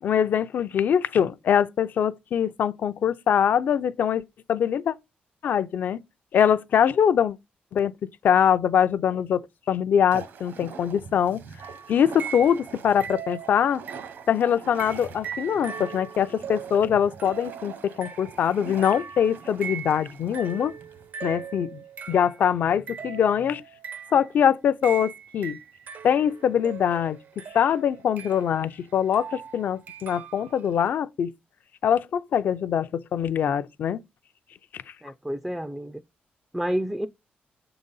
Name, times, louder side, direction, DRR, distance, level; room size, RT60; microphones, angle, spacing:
voice 1, 0.0-4.2 4.5-4.9 5.4-6.0 6.3-7.4 7.7-11.4 11.9-13.8 14.3-20.7 21.2-23.6 24.1-25.6 26.0-31.3 31.8-34.0 34.7-34.9, left 8 dB, 55° left, 0.5 m, -23 dB
sound 1, 10.1-21.1, right 6 dB, 70° right, 1.0 m, -44 dB
sound 2, 11.6-12.7 13.0-14.3 14.8-22.4 22.9-24.3 24.8-30.6, right 7 dB, 55° right, 0.6 m, -40 dB
voice 2, 35.0-36.0 36.5-37.1, equal, 5° right, 0.4 m, -29 dB
7.3 x 3.9 x 5.5 m
wide cardioid pair, 165°, 4 cm